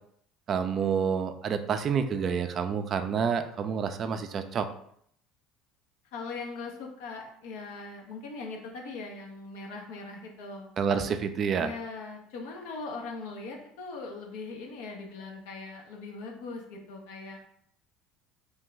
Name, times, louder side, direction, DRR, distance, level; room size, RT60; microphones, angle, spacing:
voice 1, 0.5-4.7 10.8-11.7, right 6 dB, 45° right, 9 dB, 0.3 m, -28 dB
voice 2, 6.1-10.7 11.6-17.4, left 3 dB, 80° left, 1 dB, 0.7 m, -40 dB
2.6 x 2.2 x 3.8 m, 0.68 s
supercardioid pair, 90°, 0 cm